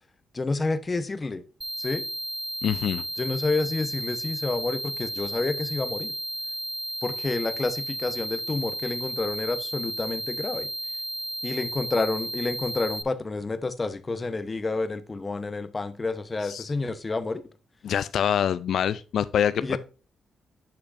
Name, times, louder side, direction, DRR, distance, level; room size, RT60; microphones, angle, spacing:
voice 1, 0.3-1.4 1.8-2.0 3.2-6.1 7.0-10.7 11.4-17.4 19.6-19.8, left 3 dB, 25° left, 0.8 m, -29 dB
sound 1, 1.6-13.0, equal, 10° right, 0.6 m, -33 dB
voice 2, 2.6-3.0 16.4-16.7 17.8-19.8, left 9 dB, 70° left, 0.4 m, -25 dB
10.0 x 5.7 x 2.5 m
cardioid pair, 120°, 0 cm